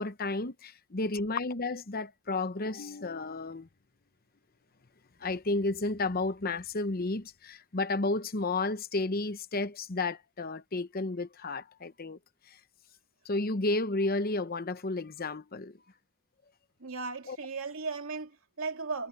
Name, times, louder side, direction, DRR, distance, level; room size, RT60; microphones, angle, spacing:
voice 1, 0.0-3.7 5.2-12.2 12.5-12.6 13.2-15.8 17.3-17.4, left 2 dB, 45° left, 0.9 m, -32 dB
voice 2, 16.8-19.1, right 4 dB, 85° right, 2.5 m, -36 dB
head